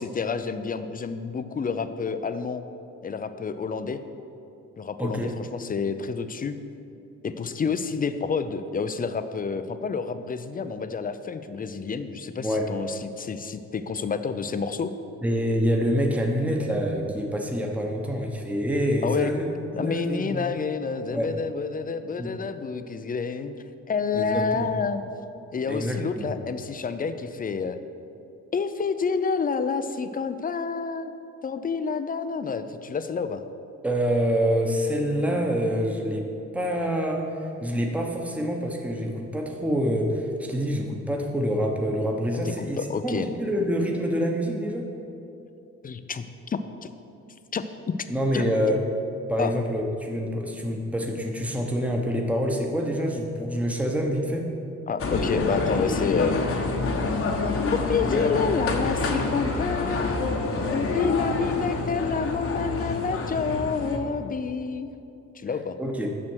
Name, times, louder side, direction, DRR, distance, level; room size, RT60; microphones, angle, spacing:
voice 1, 0.0-2.6 3.0-4.0 4.8-6.6 7.2-14.9 19.0-19.3 19.8-23.5 23.9-25.0 25.5-27.8 28.5-31.1 31.4-33.4 42.4-43.3 45.8-46.9 47.5-47.6 48.3-48.4 49.4-49.5 54.9-56.4 57.6-60.3 60.7-64.9 65.3-65.8, left 5 dB, 30° left, 10 dB, 0.5 m, -29 dB
voice 2, 5.0-5.3 12.3-12.7 15.2-19.5 19.7-20.4 21.1-21.3 22.2-22.3 24.1-24.7 25.7-26.3 33.8-36.3 36.5-44.9 48.1-48.8 49.3-54.5 65.8-66.1, equal, 5° right, 1 dB, 1.0 m, -26 dB
sound 1, 55.0-64.0, left 3 dB, 45° left, 1.0 m, -27 dB
7.5 x 6.2 x 6.2 m, 2.7 s
cardioid pair, 90°, 30 cm